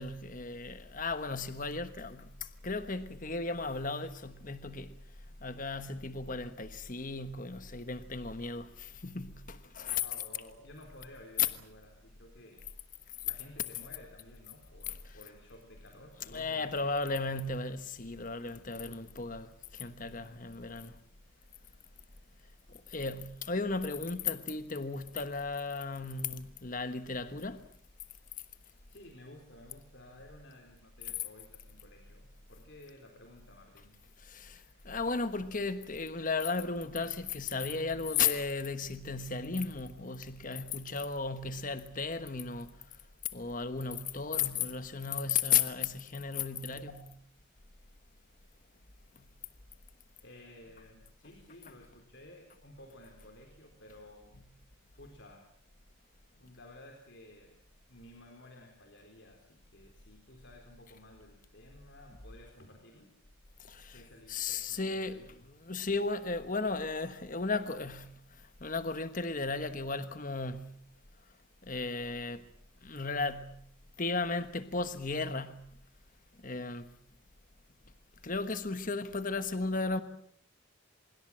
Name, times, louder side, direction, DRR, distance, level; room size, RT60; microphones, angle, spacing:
voice 1, 0.0-2.3 2.6-4.9 5.4-10.0 15.0-15.2 16.3-20.9 22.9-27.7 34.2-42.8 43.3-46.9 63.7-64.0 64.3-65.2 65.6-68.2 68.6-70.8 71.6-72.4 72.8-73.6 74.0-75.7 76.4-76.9 78.2-80.0, left 4 dB, 40° left, 1.3 m, -35 dB
voice 2, 9.9-12.7 13.2-16.9 28.9-34.0 46.7-46.9 50.2-54.4 55.0-55.5 56.3-57.6 57.9-63.1 63.9-65.5, left 1 dB, 55° left, 4.0 m, -54 dB
25.5 x 22.5 x 7.5 m
head